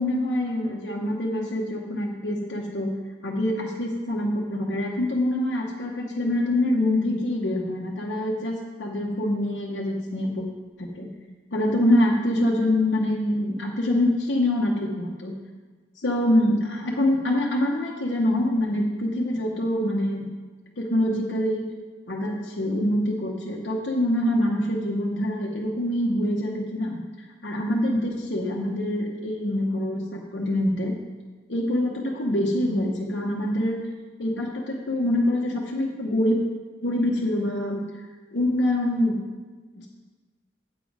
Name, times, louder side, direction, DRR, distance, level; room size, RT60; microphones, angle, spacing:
voice 1, 0.0-2.9 3.2-10.4 10.8-11.1 11.5-15.3 16.0-20.3 20.8-21.7 22.1-27.0 27.4-30.9 31.5-33.8 34.2-36.4 36.8-38.0 38.3-39.2 39.8-39.9, left 1 dB, 80° left, -3 dB, 1.0 m, -25 dB
8.2 x 7.3 x 4.9 m, 1.4 s
head